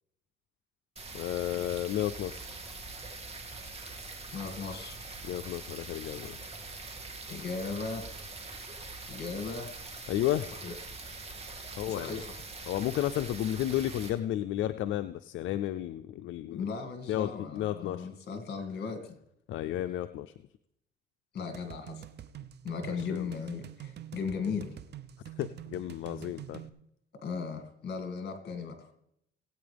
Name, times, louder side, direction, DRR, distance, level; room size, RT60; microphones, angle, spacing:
sound 1, 1.0-14.1, right 3 dB, 30° right, 2.3 m, -43 dB
voice 1, 1.1-2.4 5.2-6.4 10.1-10.5 11.8-12.2 12.7-16.7 17.1-18.1 19.5-20.3 22.9-23.3 25.4-26.6, left 13 dB, 75° left, 11 dB, 0.4 m, -32 dB
voice 2, 4.3-5.0 7.3-8.1 9.1-9.8 10.5-10.8 11.3-11.5 11.9-12.4 16.5-19.2 21.3-22.0 22.6-24.8 27.2-28.9, left 5 dB, 55° left, 6 dB, 2.3 m, -37 dB
sound 2, 21.5-26.7, right 12 dB, 55° right, 0.7 m, -46 dB
19.5 x 8.7 x 3.5 m, 0.78 s
cardioid pair, 90°, 20 cm